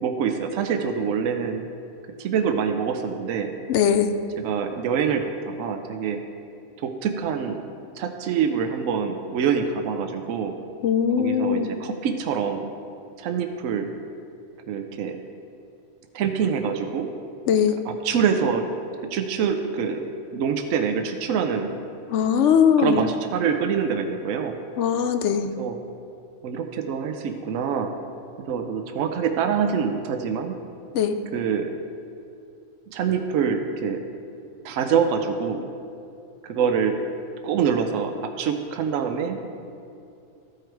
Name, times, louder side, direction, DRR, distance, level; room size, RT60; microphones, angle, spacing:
voice 1, 0.0-1.7 2.2-3.5 4.4-6.2 6.8-7.6 8.0-10.5 11.2-12.7 13.2-13.9 14.7-15.2 16.1-17.1 17.8-18.7 19.1-21.8 22.8-24.5 25.6-25.8 26.4-27.9 28.5-30.6 31.3-31.7 32.9-34.0 34.6-35.7 36.4-37.0 37.4-39.6, right 7 dB, 75° right, 5 dB, 1.0 m, -25 dB
voice 2, 3.7-4.1 10.8-11.7 17.5-17.8 22.1-23.0 24.8-25.5 30.9-31.1, left 7 dB, 70° left, 8 dB, 0.8 m, -20 dB
14.0 x 4.8 x 4.6 m, 2.6 s
omnidirectional pair, 1.4 m